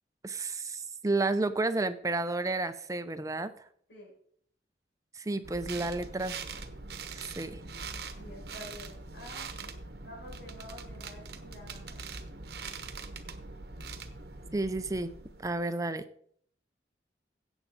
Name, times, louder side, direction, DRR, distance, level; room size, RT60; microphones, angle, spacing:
voice 1, 0.2-3.5 5.1-6.4 7.1-7.6 14.5-15.1 15.4-16.0, right 2 dB, 20° right, 11 dB, 0.5 m, -31 dB
sound 1, 5.4-15.6, right 4 dB, 60° right, 1.0 m, -43 dB
voice 2, 8.2-9.5 10.0-12.0, left 1 dB, 85° left, -3 dB, 6.0 m, -48 dB
16.0 x 7.1 x 4.0 m, 0.62 s
head